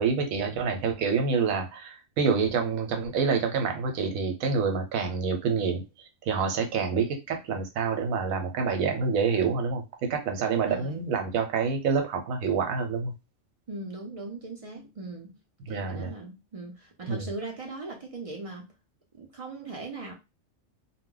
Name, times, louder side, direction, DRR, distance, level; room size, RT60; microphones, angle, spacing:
voice 1, 0.0-5.8 6.2-13.1 15.7-16.1 17.1-17.3, right 5 dB, 80° right, 1.1 m, -27 dB
voice 2, 10.5-11.0 13.7-15.4 15.7-18.7 19.1-20.1, right 3 dB, 55° right, 0.3 m, -39 dB
2.3 x 2.1 x 3.7 m
omnidirectional pair, 1.4 m